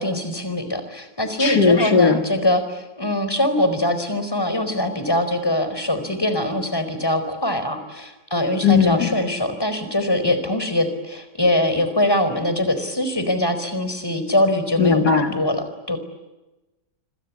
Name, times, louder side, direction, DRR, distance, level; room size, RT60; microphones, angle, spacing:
voice 1, 0.0-16.0, left 1 dB, 10° left, 9 dB, 4.6 m, -23 dB
voice 2, 1.4-2.2 8.6-9.1 14.8-15.3, left 5 dB, 65° left, 6 dB, 2.4 m, -17 dB
26.5 x 26.5 x 8.5 m, 1.0 s
omnidirectional pair, 1.9 m